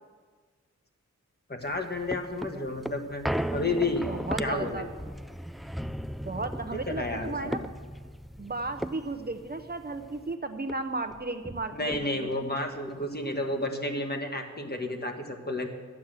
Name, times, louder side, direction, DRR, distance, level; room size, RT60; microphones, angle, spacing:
voice 1, 1.5-3.2 3.5-4.0 4.4-4.9 6.7-7.6 11.7-15.7, left 2 dB, 35° left, 4 dB, 1.5 m, -31 dB
sound 1, 1.6-10.3 10.7-10.8 11.0-12.4 12.9-13.0, equal, ahead, 0.3 m, -37 dB
voice 2, 4.1-4.9 6.3-7.7 8.4-12.3, right 3 dB, 30° right, 7 dB, 0.7 m, -34 dB
12.0 x 8.7 x 7.5 m, 1.5 s
wide cardioid pair, 80°, 30 cm